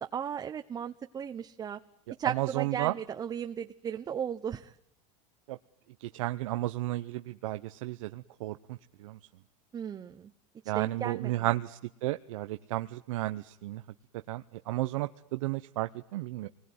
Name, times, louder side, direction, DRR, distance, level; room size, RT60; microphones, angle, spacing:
voice 1, 0.1-1.8 2.2-4.7 9.7-10.3 10.7-11.5, right 8 dB, 20° right, 6 dB, 1.0 m, -36 dB
voice 2, 2.3-2.9 5.5-5.6 6.1-9.2 10.7-13.8 14.3-16.5, right 17 dB, 85° right, 8 dB, 1.0 m, -33 dB
27.5 x 20.5 x 9.6 m, 0.77 s
supercardioid pair, 145°, 16 cm